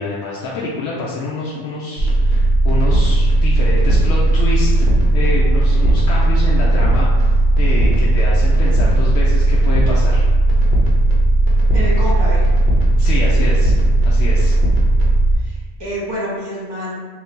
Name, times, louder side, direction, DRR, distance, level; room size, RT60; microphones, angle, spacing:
voice 1, 0.0-4.9 5.1-10.3 13.0-13.7 14.0-14.5, left 2 dB, 85° left, -5 dB, 0.9 m, -26 dB
sound 1, 2.0-15.4, right 1 dB, 65° right, 0.9 m, -15 dB
voice 2, 11.7-12.4 15.4-16.9, equal, 25° right, -8 dB, 1.2 m, -27 dB
2.7 x 2.7 x 3.5 m, 1.4 s
omnidirectional pair, 1.1 m